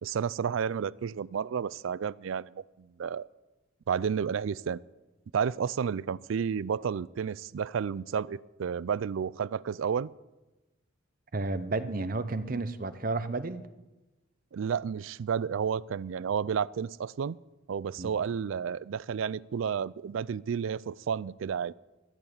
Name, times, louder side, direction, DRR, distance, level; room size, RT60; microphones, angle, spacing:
voice 1, 0.0-2.5 3.0-3.3 3.9-4.8 5.3-10.1 14.5-17.4 17.7-21.7, right 7 dB, 70° right, 22 dB, 0.4 m, -31 dB
voice 2, 11.3-13.7 18.0-18.1, right 3 dB, 45° right, 13 dB, 0.7 m, -32 dB
13.5 x 7.2 x 9.9 m, 1.1 s
head